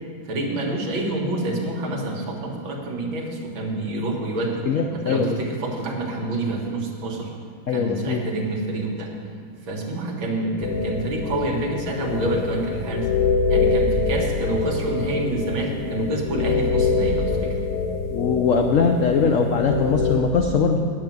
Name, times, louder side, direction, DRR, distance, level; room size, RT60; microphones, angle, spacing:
voice 1, 0.3-4.6 5.0-7.3 7.7-9.1 9.7-13.1 13.5-17.6, right 2 dB, 75° right, 0 dB, 2.3 m, -27 dB
voice 2, 4.7-5.4 7.7-8.2 18.1-20.9, left 5 dB, 85° left, 4 dB, 0.7 m, -21 dB
sound 1, 10.6-20.2, left 4 dB, 65° left, 1.1 m, -25 dB
9.4 x 8.1 x 7.5 m, 2.3 s
omnidirectional pair, 2.2 m